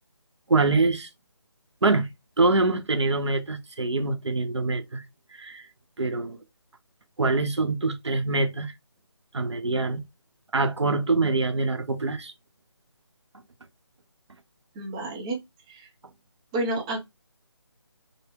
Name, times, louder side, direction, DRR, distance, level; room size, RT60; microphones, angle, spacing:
voice 1, 0.5-1.1 1.8-2.1 2.4-5.0 5.3-5.6 6.0-6.4 7.2-8.7 9.3-10.0 10.5-12.3, right 3 dB, 75° right, 0.8 m, -24 dB
voice 2, 14.7-15.4 15.7-15.9 16.5-17.1, right 2 dB, 10° right, 0.5 m, -30 dB
3.5 x 2.1 x 3.5 m
figure-of-eight pair, 155°, 15 cm